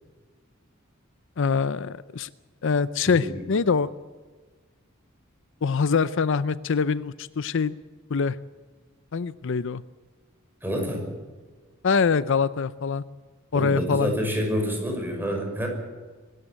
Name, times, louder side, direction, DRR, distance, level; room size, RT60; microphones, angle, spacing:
voice 1, 1.4-2.3 2.6-3.9 5.6-7.8 8.1-8.4 9.1-9.8 11.8-13.0 13.5-14.2, left 5 dB, 65° left, 17 dB, 0.5 m, -24 dB
voice 2, 10.6-11.1 13.5-15.7, equal, 10° right, 1 dB, 5.9 m, -28 dB
24.0 x 13.5 x 8.9 m, 1.4 s
head